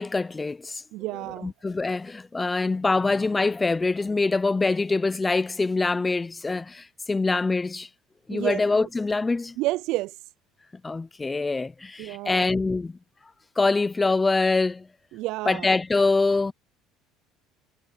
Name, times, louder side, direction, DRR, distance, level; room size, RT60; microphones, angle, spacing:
voice 1, 0.0-0.8 1.4-7.9 8.3-9.6 10.8-12.9 13.6-14.9 15.5-16.5, left 3 dB, 15° left, 0.6 m, -24 dB
voice 2, 0.9-1.5 8.3-8.9 9.6-10.1 12.0-12.6 15.1-15.7, right 18 dB, 65° right, 0.4 m, -30 dB
cardioid pair, 130°, 0 cm